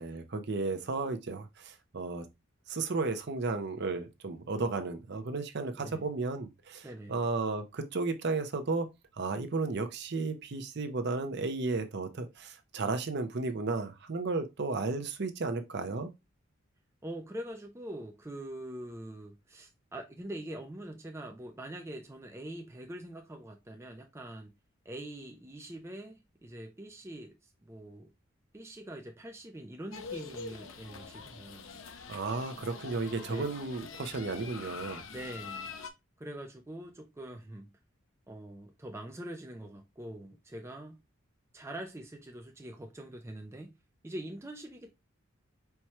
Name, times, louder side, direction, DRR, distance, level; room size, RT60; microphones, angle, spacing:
voice 1, 0.0-2.2 2.7-8.9 9.2-16.1 32.1-35.1, right 3 dB, 55° right, 0.6 m, -34 dB
voice 2, 5.7-6.0 6.8-7.2 17.0-24.5 24.9-27.3 27.6-28.1 28.5-31.8 33.3-33.5 35.1-35.7 36.2-37.7 38.3-41.0 41.5-43.8 44.0-44.9, right 1 dB, 15° right, 0.4 m, -44 dB
sound 1, 29.9-35.9, left 5 dB, 70° left, 0.7 m, -44 dB
4.5 x 2.2 x 4.3 m
head